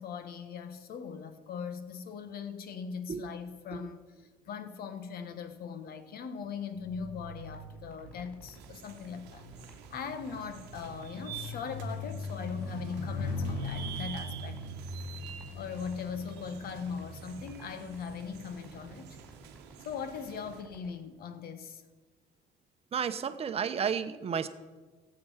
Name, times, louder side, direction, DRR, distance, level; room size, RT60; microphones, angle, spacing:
voice 1, 0.0-9.4 9.9-14.7 15.5-19.2 19.8-21.8, left 6 dB, 65° left, 1.4 m, -40 dB
sound 1, 6.8-18.4 19.1-19.4, left 2 dB, 85° left, 1.4 m, -41 dB
sound 2, 7.3-21.0, right 1 dB, 10° left, 4.6 m, -58 dB
sound 3, 8.5-20.6, right 8 dB, 90° right, 1.1 m, -48 dB
voice 2, 22.9-24.5, right 7 dB, 35° right, 0.9 m, -31 dB
15.5 x 7.9 x 5.7 m
cardioid pair, 110°, 17 cm